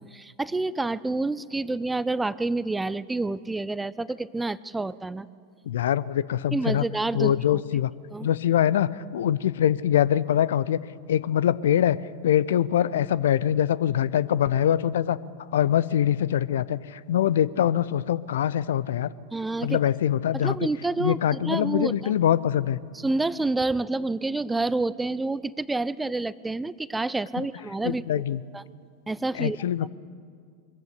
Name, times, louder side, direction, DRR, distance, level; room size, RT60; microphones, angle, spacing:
voice 1, 0.0-5.3 6.5-7.6 8.1-8.3 19.3-19.8 20.3-22.1 22.9-28.2 28.5-28.6 29.1-29.9, right 2 dB, 10° right, 18 dB, 0.5 m, -28 dB
voice 2, 5.7-6.8 7.1-7.9 8.2-10.8 11.1-12.0 12.2-15.2 15.5-19.1 19.6-20.6 21.0-22.8 27.4-27.5 27.8-28.4 29.4-29.9, left 10 dB, 60° left, 19 dB, 0.5 m, -23 dB
22.5 x 14.5 x 8.3 m, 2.2 s
figure-of-eight pair, 90°, 0 cm